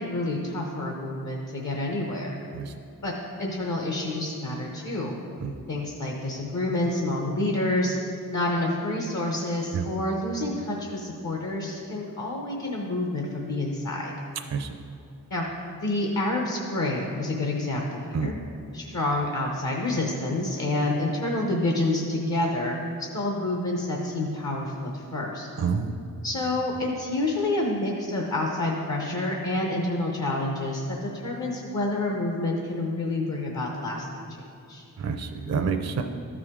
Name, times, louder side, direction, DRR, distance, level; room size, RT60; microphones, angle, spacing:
voice 1, 0.0-2.4 3.0-3.1 3.4-5.2 5.7-8.0 8.3-14.1 15.3-15.4 15.8-18.3 18.7-22.8 23.1-25.5 26.2-34.8, left 2 dB, 50° left, 0 dB, 0.9 m, -28 dB
voice 2, 25.6-25.9 35.0-36.0, right 6 dB, 45° right, 5 dB, 0.5 m, -28 dB
13.0 x 4.9 x 3.7 m, 2.7 s
wide cardioid pair, 105°, 36 cm